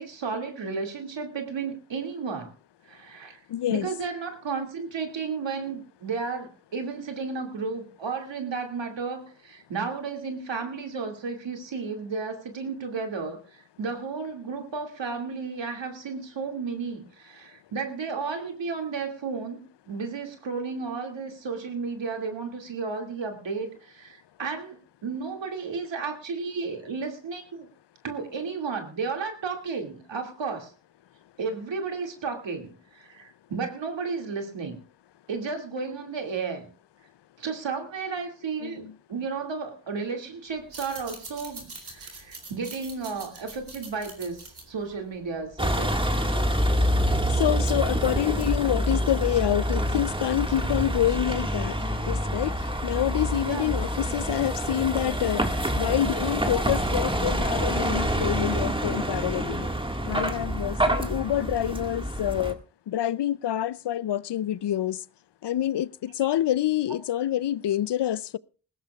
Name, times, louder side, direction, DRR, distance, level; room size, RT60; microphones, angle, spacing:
voice 1, 0.0-2.5 2.8-3.4 3.7-24.8 25.0-27.7 28.0-30.7 31.4-34.8 35.3-36.7 37.4-46.0 53.5-53.7, right 5 dB, 80° right, 2.5 m, -33 dB
voice 2, 3.5-3.9 38.6-38.9 47.3-52.5 52.8-55.4 55.8-59.7 60.1-62.6 62.9-65.0 65.4-68.4, left 12 dB, 70° left, 0.6 m, -27 dB
sound 1, 40.6-45.8, right 3 dB, 60° right, 3.8 m, -44 dB
Vehicle, 45.6-62.5, equal, 10° right, 1.8 m, -27 dB
20.0 x 16.0 x 2.4 m
cardioid pair, 45°, 43 cm